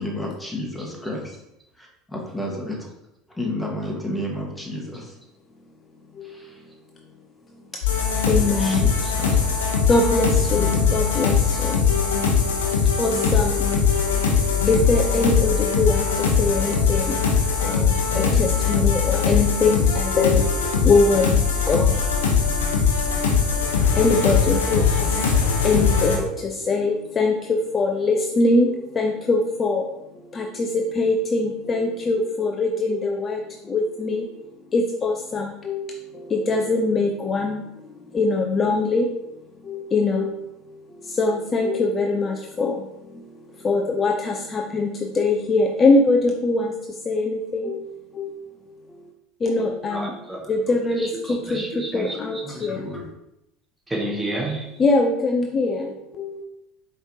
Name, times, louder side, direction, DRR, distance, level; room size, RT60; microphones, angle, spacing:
voice 1, 0.0-1.3 2.1-2.8 3.3-5.1 6.2-6.6 8.6-9.4 10.5-10.9 52.4-53.1, left 1 dB, 10° left, -1 dB, 1.3 m, -31 dB
sound 1, 7.8-26.2, left 6 dB, 80° left, 0.8 m, -21 dB
voice 2, 8.3-8.8 9.9-11.8 13.0-13.6 14.7-17.2 17.6-21.4 21.7-22.0 24.0-25.0 25.6-29.8 30.3-33.4 33.7-34.3 34.7-36.0 36.3-37.6 38.1-39.1 39.7-40.3 41.2-42.8 43.6-44.9 45.1-46.7 47.1-47.8 48.1-48.3 49.4-50.1 50.5-52.8 54.8-56.4, left 3 dB, 30° left, 2 dB, 0.5 m, -22 dB
voice 3, 49.9-52.7 53.9-54.7, right 1 dB, 15° right, -2 dB, 1.1 m, -31 dB
4.8 x 3.2 x 2.7 m, 0.85 s
hypercardioid pair, 75°, 0 cm